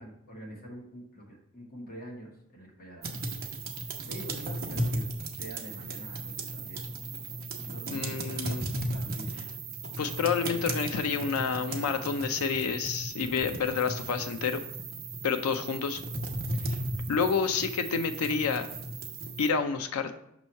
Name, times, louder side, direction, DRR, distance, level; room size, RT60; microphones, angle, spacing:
voice 1, 0.0-3.3 3.9-5.0 5.4-6.9 7.6-8.6 8.9-9.3 13.3-13.6 17.0-17.3, right 1 dB, 45° left, -2 dB, 1.7 m, -46 dB
sound 1, 3.0-19.5, right 2 dB, 45° right, 0.8 m, -36 dB
voice 2, 7.9-8.7 10.0-14.6 15.2-16.0 17.1-18.7 19.4-20.1, left 5 dB, 85° left, 8 dB, 0.4 m, -29 dB
6.2 x 3.0 x 5.4 m, 0.77 s
head